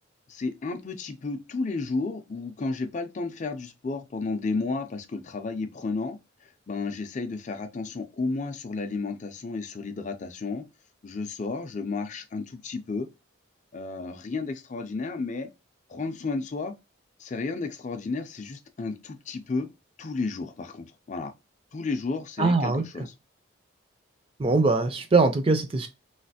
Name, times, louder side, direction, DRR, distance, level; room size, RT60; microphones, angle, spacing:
voice 1, 0.3-6.2 6.7-10.6 11.0-13.1 13.7-15.5 15.9-16.7 17.2-19.7 20.0-21.3 21.7-23.1, left 3 dB, 35° left, 0.4 m, -32 dB
voice 2, 22.4-22.8 24.4-25.9, right 3 dB, 25° right, 0.4 m, -22 dB
3.1 x 2.4 x 2.7 m
head